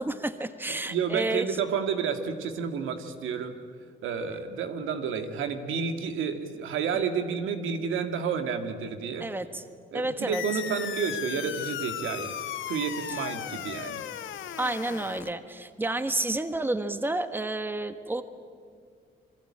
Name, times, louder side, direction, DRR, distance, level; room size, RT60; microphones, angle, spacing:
voice 1, 0.0-1.4 9.2-9.6 9.9-10.4 13.1-13.3 14.6-18.2, right 2 dB, 10° right, 9 dB, 1.5 m, -30 dB
voice 2, 0.7-3.5 4.0-9.3 9.9-12.3 12.7-14.0, right 6 dB, 85° right, 7 dB, 2.1 m, -30 dB
sound 1, 10.3-15.3, left 11 dB, 75° left, 1.3 m, -36 dB
27.5 x 23.0 x 8.8 m, 2.1 s
cardioid pair, 90°, 20 cm